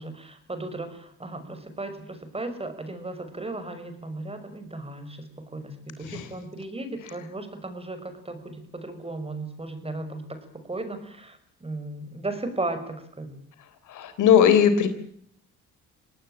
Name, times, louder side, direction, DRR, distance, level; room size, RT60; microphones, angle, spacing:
voice 1, 0.0-5.3 5.5-10.4 10.7-13.4, right 2 dB, 20° right, 9 dB, 5.8 m, -35 dB
voice 2, 13.9-14.9, left 8 dB, 80° left, 11 dB, 3.9 m, -19 dB
25.5 x 18.5 x 9.0 m, 0.67 s
cardioid pair, 90°, 30 cm